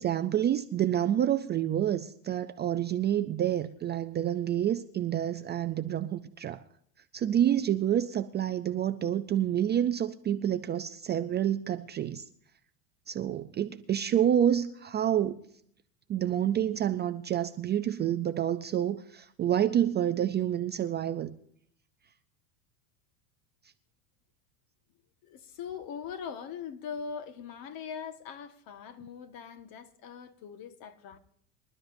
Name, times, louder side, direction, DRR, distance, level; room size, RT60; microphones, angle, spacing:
voice 1, 0.0-6.6 7.1-12.2 13.1-15.4 16.1-21.3, right 10 dB, 25° right, 0.4 m, -28 dB
voice 2, 25.2-31.2, left 7 dB, 45° left, 1.6 m, -41 dB
25.5 x 12.0 x 2.6 m
supercardioid pair, 120°, 47 cm